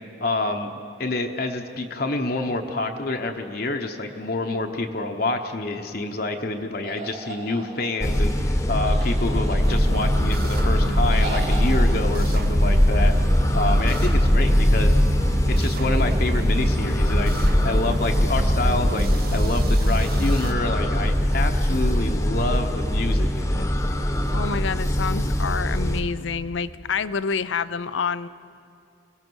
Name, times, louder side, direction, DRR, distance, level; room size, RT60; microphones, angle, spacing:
voice 1, 0.2-13.1 13.5-14.9 15.5-23.7, left 2 dB, 50° left, 4 dB, 1.0 m, -28 dB
sound 1, 6.8-8.2 8.9-10.0 11.1-11.8, right 2 dB, 80° right, 3.3 m, -36 dB
sound 2, 8.0-26.0, equal, 15° left, 1.0 m, -21 dB
sound 3, 9.6-20.5, right 2 dB, 50° right, 0.9 m, -35 dB
voice 2, 24.3-28.3, left 5 dB, 80° left, 15 dB, 0.5 m, -28 dB
24.5 x 17.5 x 6.3 m, 2.5 s
head